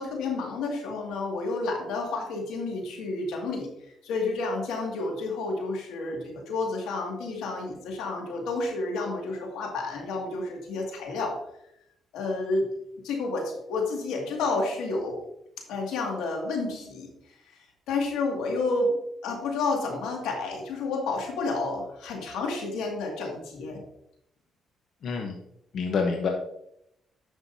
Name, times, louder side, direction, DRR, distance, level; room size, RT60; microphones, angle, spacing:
voice 1, 0.0-3.7 4.0-11.3 12.1-12.7 13.0-15.2 15.7-17.1 17.9-19.0 19.2-23.8, left 3 dB, 90° left, 1 dB, 2.2 m, -30 dB
voice 2, 25.0-25.4 25.7-26.3, left 5 dB, 65° left, 2 dB, 1.0 m, -27 dB
9.9 x 6.5 x 2.8 m, 0.78 s
cardioid pair, 90°, 0 cm